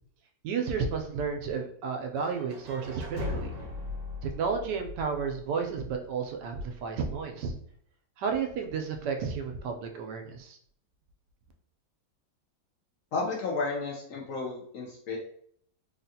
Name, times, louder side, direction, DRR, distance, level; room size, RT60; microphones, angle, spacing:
voice 1, 0.4-3.5 4.2-7.5 8.2-10.6, right 5 dB, 80° right, 4 dB, 1.2 m, -32 dB
sound 1, 2.2-6.1, left 2 dB, 55° right, 1.0 m, -39 dB
voice 2, 13.1-15.2, left 3 dB, 65° left, -3 dB, 0.9 m, -32 dB
3.4 x 2.4 x 2.7 m, 0.62 s
omnidirectional pair, 1.8 m